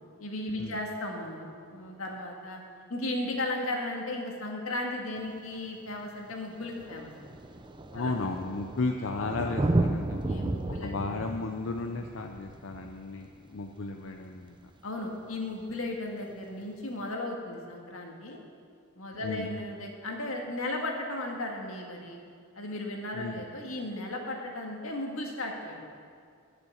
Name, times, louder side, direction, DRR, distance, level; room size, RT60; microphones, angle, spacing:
voice 1, 0.2-2.6 2.9-7.1 7.9-8.1 9.2-9.5 10.1-11.1 14.8-18.4 18.9-22.2 22.5-25.8, left 2 dB, 85° left, 1 dB, 1.8 m, -35 dB
Thunder, 5.2-5.3 6.3-6.4 6.6-13.9 15.6-15.7, right 2 dB, 25° right, 0.5 m, -33 dB
voice 2, 7.9-10.3 10.8-14.6 19.2-19.5 23.1-23.5, left 3 dB, 65° left, 3 dB, 0.6 m, -34 dB
12.0 x 6.9 x 7.1 m, 2.3 s
head